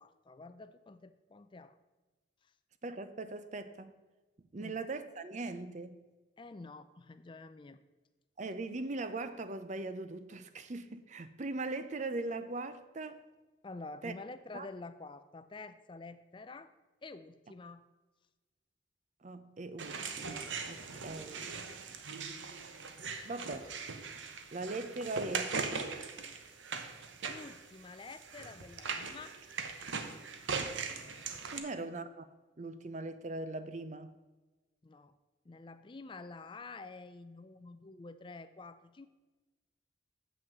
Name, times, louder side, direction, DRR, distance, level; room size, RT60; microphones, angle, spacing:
voice 1, 0.0-1.8 4.6-4.8 6.4-7.8 13.6-16.7 17.0-17.8 27.2-29.4 31.5-31.9 34.8-35.1 35.5-39.1, left 3 dB, 25° left, 0.4 m, -48 dB
voice 2, 2.8-3.9 4.5-6.0 8.4-13.2 14.0-14.1 14.5-14.7 19.2-21.6 23.2-23.7 24.0-24.2 24.5-25.6 31.5-32.3 32.6-34.1, right 2 dB, 40° right, 0.5 m, -40 dB
sound 1, 19.8-31.6, right 5 dB, 80° right, 0.9 m, -40 dB
7.1 x 6.1 x 7.7 m
head